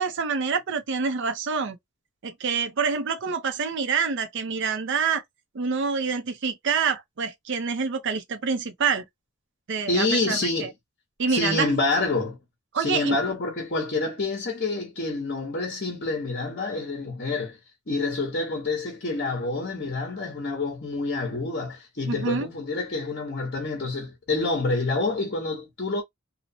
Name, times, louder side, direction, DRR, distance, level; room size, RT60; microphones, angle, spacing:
voice 1, 0.0-1.8 2.2-5.2 5.5-9.0 9.7-10.7 11.2-11.7 12.7-13.2 22.1-22.5, right 5 dB, 60° right, 0.5 m, -26 dB
voice 2, 9.9-10.7 11.3-12.4 12.7-17.6 17.9-26.0, left 3 dB, 45° left, 0.9 m, -27 dB
2.8 x 2.0 x 2.6 m
head